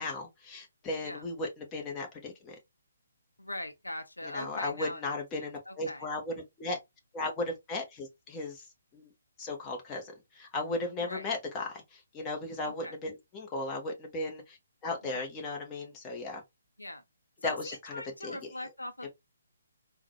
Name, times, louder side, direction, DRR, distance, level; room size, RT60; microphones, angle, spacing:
voice 1, 0.0-2.6 4.2-6.8 7.1-8.7 8.9-9.1 9.4-14.6 14.8-16.4 17.4-18.4 19.0-19.1, left 2 dB, 15° left, 0.9 m, -36 dB
voice 2, 3.4-5.0 5.4-6.1 11.0-11.3 12.6-12.9 15.0-15.3 16.8-17.0 17.4-19.1, left 1 dB, 80° left, 0.6 m, -41 dB
3.8 x 2.2 x 2.8 m
figure-of-eight pair, 135°, 0 cm